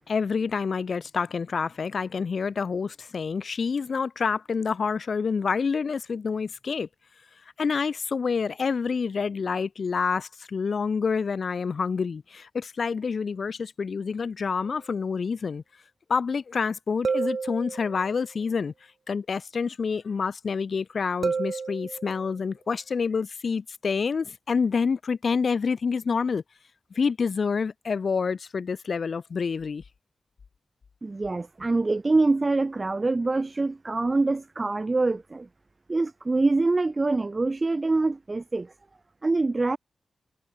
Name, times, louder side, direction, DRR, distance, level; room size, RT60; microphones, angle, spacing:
voice 1, 0.1-6.9 7.6-15.6 16.1-18.7 19.1-26.4 27.0-29.8, left 5 dB, 50° left, 2.1 m, -27 dB
sound 1, 14.6-14.7 17.0-18.2 21.2-22.3, right 5 dB, 50° right, 1.1 m, -30 dB
voice 2, 31.0-35.5 35.9-38.7 39.2-39.8, right 3 dB, 25° right, 0.8 m, -25 dB
wide cardioid pair, 175°, 0 cm